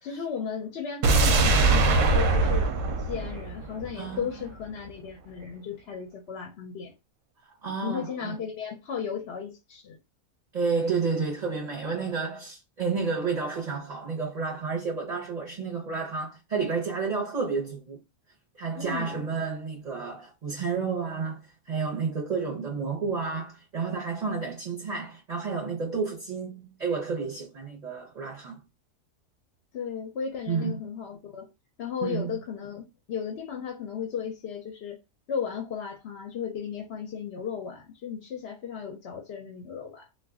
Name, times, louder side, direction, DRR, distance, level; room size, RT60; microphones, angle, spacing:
voice 1, 0.0-2.7 3.1-6.9 7.6-10.0 18.8-19.2 29.7-31.5 31.8-35.0 35.3-40.1, left 7 dB, 60° left, 0.7 m, -35 dB
sound 1, 1.0-4.2 4.5-4.6, right 3 dB, 65° right, 0.9 m, -22 dB
voice 2, 7.6-8.4 10.5-18.0 18.6-28.6 30.5-30.8 32.0-32.3, right 5 dB, 40° right, 0.6 m, -31 dB
2.4 x 2.2 x 3.5 m
omnidirectional pair, 1.6 m